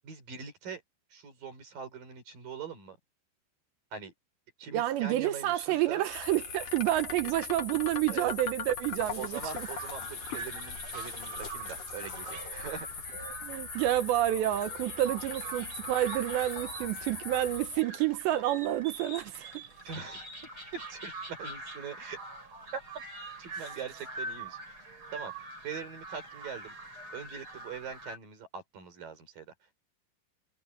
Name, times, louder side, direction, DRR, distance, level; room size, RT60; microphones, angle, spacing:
voice 1, 0.0-0.8 1.1-3.0 3.9-4.1 4.6-6.0 7.2-7.3 8.1-8.3 9.2-13.5 19.8-20.3 20.7-22.2 22.7-22.8 23.4-24.8 25.1-26.7 27.1-29.8, right 6 dB, 45° right, 5.7 m, -42 dB
voice 2, 4.7-9.7 13.4-19.6, right 14 dB, 75° right, 2.9 m, -29 dB
sound 1, 5.0-21.1, left 7 dB, 80° left, 1.4 m, -44 dB
sound 2, 6.1-17.8, left 5 dB, 40° left, 7.1 m, -42 dB
sound 3, 9.3-28.2, right 2 dB, 25° right, 6.9 m, -44 dB
omnidirectional pair, 5.7 m